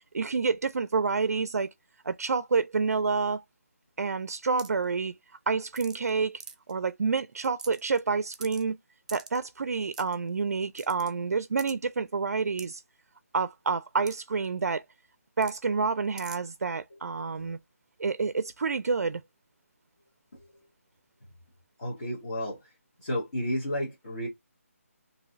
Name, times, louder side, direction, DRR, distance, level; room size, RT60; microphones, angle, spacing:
voice 1, 0.1-1.7 2.0-3.4 4.0-5.1 5.5-6.4 6.7-8.8 9.1-12.8 13.3-14.8 15.4-17.6 18.0-19.2, right 4 dB, 90° right, 0.4 m, -28 dB
sound 1, 4.6-4.8 5.8-6.1 6.4-6.7 7.2-7.3 7.4-8.0 8.3-8.6 9.1-9.4 9.9-10.2 10.8-11.1 11.6-11.7 12.6-12.7 14.1-14.2 14.4-14.5 15.4-15.6 16.2-16.4, right 5 dB, 30° right, 0.5 m, -43 dB
voice 2, 21.8-22.7 23.0-24.3, equal, 25° left, 1.1 m, -32 dB
3.0 x 2.7 x 2.4 m
hypercardioid pair, 175°, 8 cm